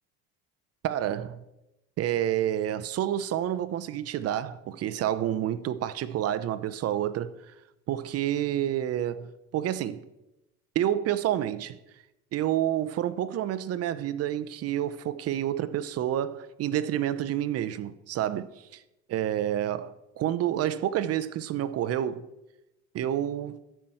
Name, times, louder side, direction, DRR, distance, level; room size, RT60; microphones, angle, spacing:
voice 1, 0.8-1.4 2.0-7.3 7.9-10.0 10.7-11.8 12.3-18.8 19.1-22.2 22.9-23.6, right 11 dB, 50° right, 0.7 m, -29 dB
13.0 x 5.7 x 7.7 m
cardioid pair, 115°, 31 cm